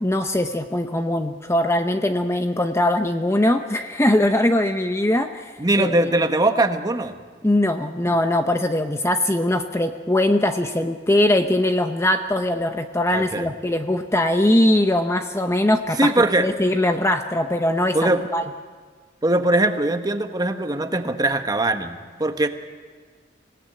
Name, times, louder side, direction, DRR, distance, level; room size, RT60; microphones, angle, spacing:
voice 1, 0.0-6.1 7.4-18.4, left 1 dB, 15° left, 6 dB, 0.8 m, -21 dB
voice 2, 5.6-7.1 8.0-8.1 13.1-13.5 16.0-16.5 17.9-18.2 19.2-22.5, right 2 dB, 20° right, 7 dB, 1.2 m, -21 dB
25.5 x 17.5 x 9.1 m, 1.5 s
head